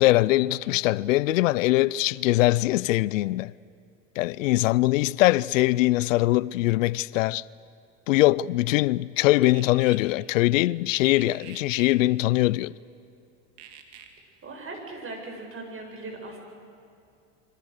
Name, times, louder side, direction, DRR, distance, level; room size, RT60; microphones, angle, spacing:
voice 1, 0.0-3.5 4.2-7.4 8.1-12.7, left 17 dB, 85° left, 0.6 m, -22 dB
sound 1, 9.4-10.0 10.9-12.0 13.6-14.1, right 10 dB, 70° right, 2.9 m, -46 dB
voice 2, 14.4-16.4, right 2 dB, 35° right, 8.0 m, -39 dB
27.0 x 25.5 x 6.6 m
hypercardioid pair, 90°, 38 cm